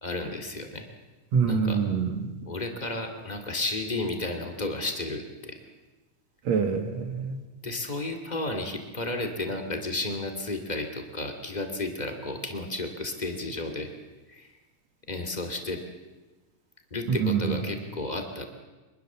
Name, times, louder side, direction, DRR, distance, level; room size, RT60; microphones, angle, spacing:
voice 1, 0.0-0.8 1.5-1.8 2.4-5.6 7.6-13.9 14.3-14.5 15.1-15.8 16.9-18.4, left 2 dB, 15° left, 6 dB, 1.9 m, -32 dB
voice 2, 1.3-2.3 6.5-7.4 17.1-17.6, right 6 dB, 55° right, 8 dB, 2.6 m, -25 dB
24.0 x 21.5 x 7.4 m, 1.2 s
omnidirectional pair, 4.0 m